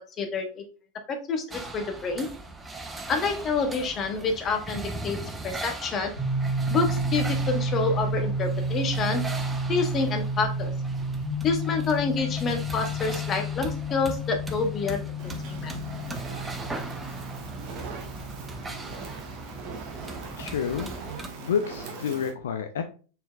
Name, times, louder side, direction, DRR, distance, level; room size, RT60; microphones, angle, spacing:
voice 1, 0.2-0.6 1.1-2.3 3.1-5.2 5.4-6.1 6.7-9.2 9.7-10.7 11.4-15.1 15.5-15.7, left 4 dB, 25° left, 5 dB, 0.7 m, -28 dB
sound 1, 1.5-21.3, right 2 dB, 10° right, 0.5 m, -39 dB
sound 2, 6.2-19.8, equal, 90° left, 1.4 m, -31 dB
Fire, 15.2-22.3, right 4 dB, 40° right, 0.9 m, -40 dB
voice 2, 20.4-20.9 21.4-22.8, left 7 dB, 60° left, 7 dB, 0.3 m, -29 dB
4.1 x 3.7 x 2.3 m, 0.37 s
figure-of-eight pair, 90°, 0 cm